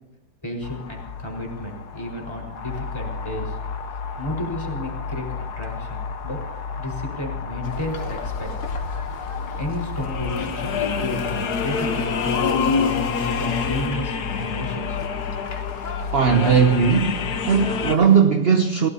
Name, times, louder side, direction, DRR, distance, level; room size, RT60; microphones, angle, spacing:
voice 1, 0.4-3.6 4.2-5.3 5.6-6.4 6.8-8.5 9.6-15.1, left 1 dB, 15° left, 4.5 m, -32 dB
sound 1, 0.6-18.0, left 5 dB, 70° left, 1.6 m, -28 dB
sound 2, 7.6-18.2, left 3 dB, 85° left, 2.5 m, -38 dB
voice 2, 16.1-18.9, right 6 dB, 45° right, 0.9 m, -18 dB
29.5 x 17.5 x 2.8 m
omnidirectional pair, 1.8 m